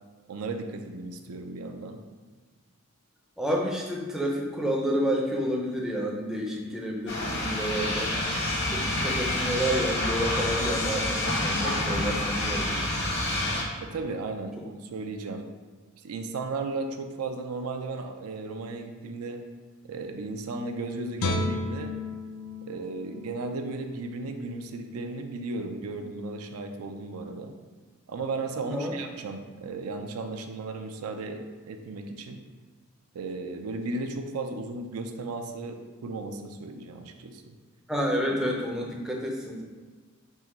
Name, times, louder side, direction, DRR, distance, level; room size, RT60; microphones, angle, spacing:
voice 1, 0.3-2.0 13.8-15.5 16.0-19.4 19.9-21.9 22.7-27.6 28.1-32.4 33.1-37.5, right 3 dB, 85° right, 5 dB, 0.4 m, -35 dB
voice 2, 3.4-8.2 8.7-12.8 28.6-28.9 37.9-39.6, equal, ahead, -2 dB, 0.4 m, -29 dB
sound 1, 7.1-13.6, left 1 dB, 55° left, 1.0 m, -28 dB
Guitar, 21.2-24.3 24.7-24.9, left 2 dB, 80° left, 0.4 m, -33 dB
3.6 x 2.9 x 4.1 m, 1.4 s
head